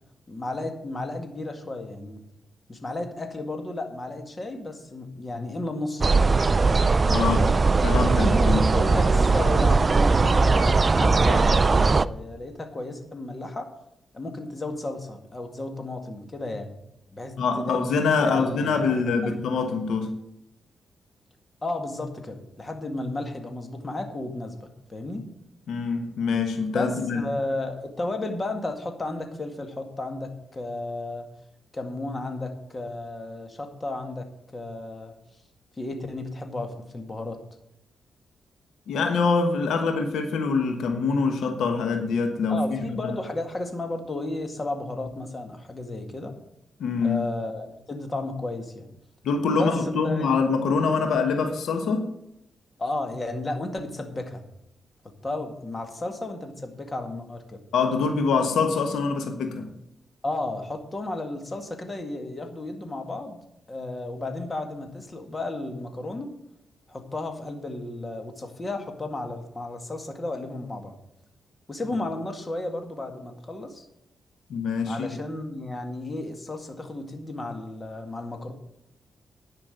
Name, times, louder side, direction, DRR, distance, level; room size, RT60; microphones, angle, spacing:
voice 1, 0.3-2.2 2.7-6.3 7.2-7.5 8.2-13.7 14.1-16.7 17.1-17.8 18.2-19.3 21.6-25.3 26.7-31.3 31.7-34.2 34.5-35.1 35.8-37.4 42.5-46.3 47.0-48.9 49.6-50.3 52.8-54.4 55.2-57.6 60.2-63.4 63.7-66.3 66.9-70.9 71.7-73.8 74.9-78.5, left 2 dB, 30° left, 5 dB, 1.9 m, -33 dB
sound 1, 6.0-12.1, right 3 dB, 35° right, 0.4 m, -19 dB
voice 2, 7.1-7.4 7.8-8.7 17.4-20.1 25.7-27.2 38.9-43.1 46.8-47.2 49.2-52.1 57.7-59.7 74.5-75.1, left 4 dB, 85° left, 5 dB, 1.3 m, -24 dB
10.5 x 6.0 x 7.8 m, 0.81 s
cardioid pair, 85°, 0 cm